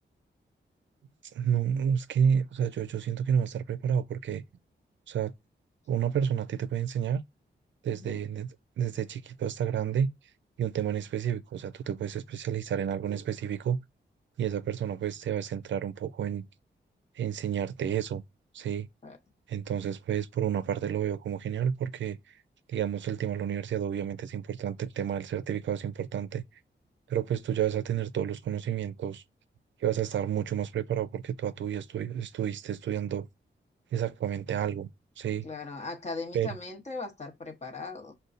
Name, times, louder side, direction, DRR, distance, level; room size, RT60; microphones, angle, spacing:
voice 1, 1.3-4.4 5.1-5.3 5.9-7.2 7.8-8.5 8.8-10.1 10.6-13.8 14.4-16.5 17.2-18.2 18.5-18.9 19.5-22.4 22.7-26.4 27.1-29.2 29.8-33.3 33.9-34.9 35.2-35.5 36.3-36.5, right 8 dB, 80° right, 0.4 m, -30 dB
voice 2, 7.9-8.2 19.0-19.2 35.4-38.1, left 3 dB, 35° left, 0.9 m, -39 dB
6.6 x 2.2 x 2.5 m
wide cardioid pair, 120°, 19 cm